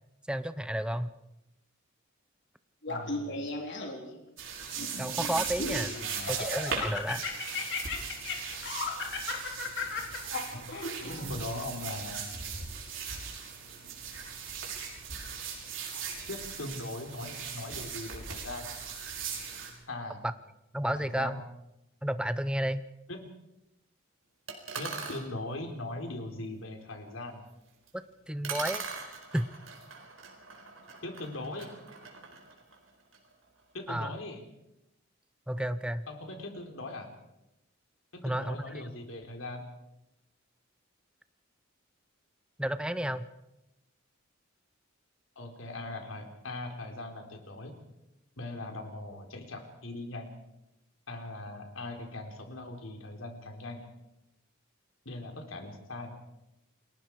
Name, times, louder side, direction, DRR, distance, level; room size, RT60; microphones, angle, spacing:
voice 1, 0.3-1.1 5.0-5.9 6.3-7.2 20.7-21.4 22.0-22.8 27.9-28.8 29.3-29.5 33.9-34.1 35.5-36.1 38.2-38.6 42.6-43.3, equal, 5° right, 12 dB, 0.8 m, -31 dB
Laughter, 2.8-4.1 4.8-5.8 6.3-11.3, left 3 dB, 60° left, 4.0 m, -35 dB
voice 2, 2.9-3.4 5.9-6.4 10.5-10.7 11.3-12.2 16.3-18.7 19.9-20.2 21.0-21.4 23.1-23.2 24.8-27.4 31.0-31.7 33.7-34.4 36.1-37.1 38.1-39.6 45.4-47.8 48.4-50.3 51.1-53.9 55.1-56.2, left 2 dB, 75° left, 4 dB, 4.0 m, -40 dB
sound 1, 4.4-19.7, right 6 dB, 70° right, 6.3 m, -38 dB
Tin Can Dropping and Rolling, 24.5-25.3 27.9-28.0 28.4-33.3, right 5 dB, 90° right, 4.4 m, -41 dB
29.0 x 21.0 x 4.8 m, 0.90 s
head